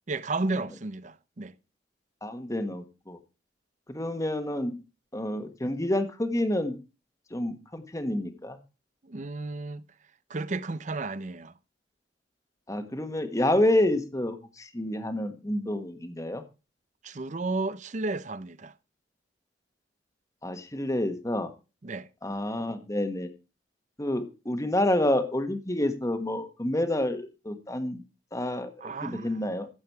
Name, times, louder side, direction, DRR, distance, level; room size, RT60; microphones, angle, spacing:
voice 1, 0.1-1.5 9.0-9.9 10.3-11.5 17.0-18.7 21.8-22.1 28.8-29.4, right 3 dB, 40° right, 0.7 m, -33 dB
voice 2, 2.2-3.2 3.9-4.7 5.1-6.8 7.3-8.6 12.7-16.4 20.4-21.5 22.2-23.3 24.0-28.0 28.3-29.7, left 1 dB, 20° left, 1.4 m, -28 dB
14.5 x 8.0 x 4.7 m
head